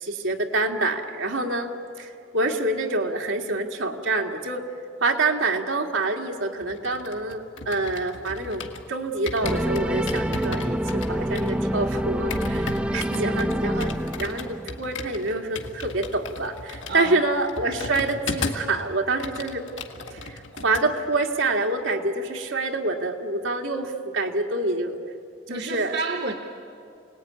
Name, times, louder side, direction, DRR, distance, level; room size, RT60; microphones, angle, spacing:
voice 1, 0.0-1.7 2.0-4.7 5.0-8.6 8.9-19.7 20.1-25.0 25.5-25.9, right 2 dB, 85° right, 2 dB, 2.2 m, -26 dB
sound 1, 6.6-8.9 9.3-18.7 19.0-20.9 21.1-21.4, left 3 dB, 80° left, 2.0 m, -36 dB
sound 2, 9.4-15.0, equal, 5° right, 0.6 m, -27 dB
voice 2, 16.9-17.2 25.5-26.3, right 3 dB, 55° right, 5 dB, 1.4 m, -30 dB
28.5 x 19.5 x 9.7 m, 2.6 s
head